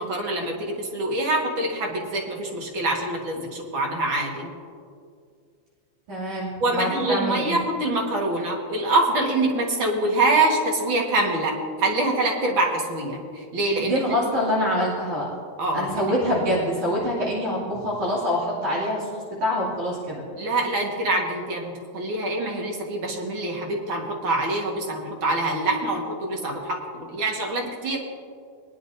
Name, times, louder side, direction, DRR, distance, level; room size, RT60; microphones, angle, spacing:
voice 1, 0.0-4.5 6.6-14.2 15.6-16.1 20.4-28.0, right 2 dB, 50° right, 0 dB, 2.0 m, -25 dB
voice 2, 6.1-7.6 13.8-15.3 15.7-20.2, equal, 75° right, -8 dB, 4.0 m, -25 dB
21.0 x 10.5 x 2.6 m, 2.2 s
omnidirectional pair, 3.4 m